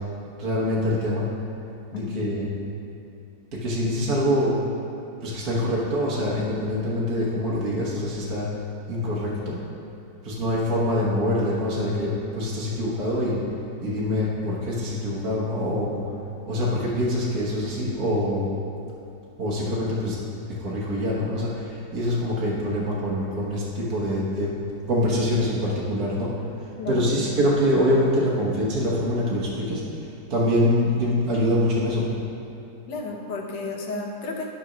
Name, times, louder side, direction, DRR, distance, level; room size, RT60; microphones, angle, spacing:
voice 1, 0.4-1.3 1.9-2.4 3.5-4.5 5.2-8.5 8.9-9.6 10.2-13.4 13.8-16.0 16.5-18.5 19.4-20.2 20.6-24.5 24.9-26.3 26.6-32.1, left 1 dB, 60° right, -6 dB, 1.8 m, -25 dB
voice 2, 1.9-2.4 26.8-27.1 32.9-34.5, left 3 dB, 90° left, -1 dB, 1.7 m, -32 dB
12.0 x 3.9 x 6.1 m, 2.8 s
omnidirectional pair, 1.9 m